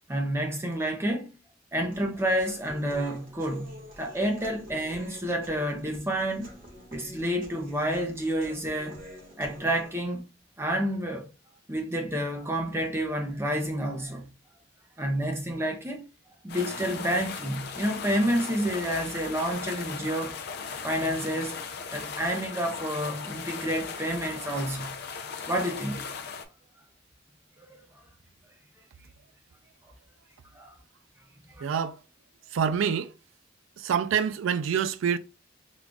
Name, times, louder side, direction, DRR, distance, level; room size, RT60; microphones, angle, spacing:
voice 1, 0.1-1.3 1.7-6.5 6.9-9.0 9.4-10.2 10.6-11.3 11.7-14.3 15.0-16.1 16.4-20.3 20.8-21.5 21.9-24.9 25.5-26.0 27.6-27.7 30.5-30.7 31.6-31.7, equal, 15° right, 0.6 m, -29 dB
Human voice, 1.9-9.9, equal, 45° right, 1.5 m, -48 dB
sound 1, 16.5-26.5, left 5 dB, 55° left, 0.5 m, -38 dB
voice 2, 31.6-32.0 32.5-33.1 33.8-35.2, right 7 dB, 80° right, 0.3 m, -26 dB
3.7 x 2.4 x 3.4 m
head